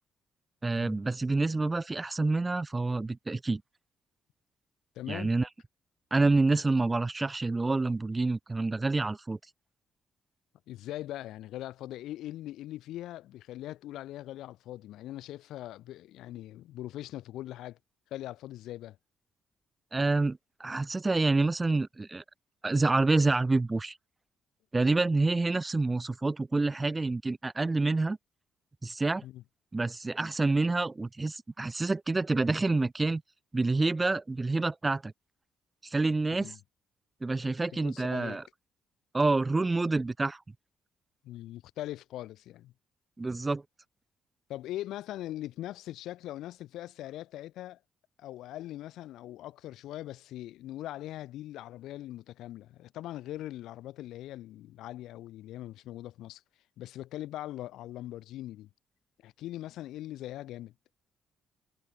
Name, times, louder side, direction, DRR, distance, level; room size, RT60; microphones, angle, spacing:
voice 1, 0.6-3.6 5.1-5.5 6.1-9.4 19.9-22.2 22.6-24.0 24.7-28.2 28.8-29.2 29.7-33.2 33.5-35.1 35.8-36.5 37.2-38.4 39.1-40.4 43.2-43.6, right 3 dB, 20° right, 1.4 m, -27 dB
voice 2, 5.0-5.3 10.7-17.8 18.1-19.0 29.2-29.4 36.4-36.6 37.8-38.4 41.2-42.7 44.5-47.8 48.2-56.4 56.8-58.7 59.2-60.7, left 14 dB, 85° left, 3.6 m, -41 dB
cardioid pair, 90°, 0 cm